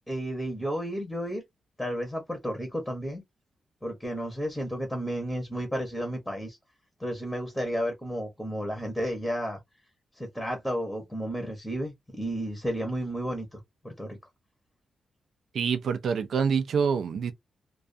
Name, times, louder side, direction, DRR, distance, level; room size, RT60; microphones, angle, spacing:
voice 1, 0.1-1.4 1.8-3.2 3.8-6.6 7.0-9.6 10.2-14.2, equal, 5° left, 0.8 m, -32 dB
voice 2, 15.5-17.3, right 6 dB, 65° right, 0.4 m, -26 dB
2.3 x 2.3 x 2.5 m
wide cardioid pair, 125°, 0 cm